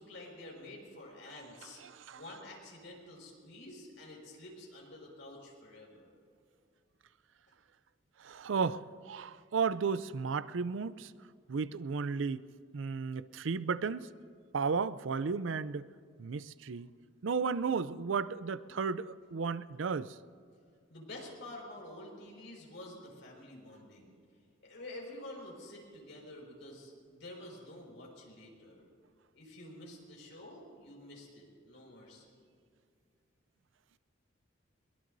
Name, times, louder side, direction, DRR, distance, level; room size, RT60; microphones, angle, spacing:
voice 1, 0.0-1.8 2.1-6.1 20.9-24.1 24.6-28.9 29.3-32.3, left 1 dB, 75° left, -1 dB, 5.2 m, -49 dB
voice 2, 1.8-2.2 8.2-11.1 11.5-12.5 12.7-14.1 14.5-15.9 16.2-16.9 17.2-20.2, right 5 dB, 90° right, 15 dB, 0.5 m, -34 dB
22.5 x 21.0 x 2.7 m, 2.2 s
head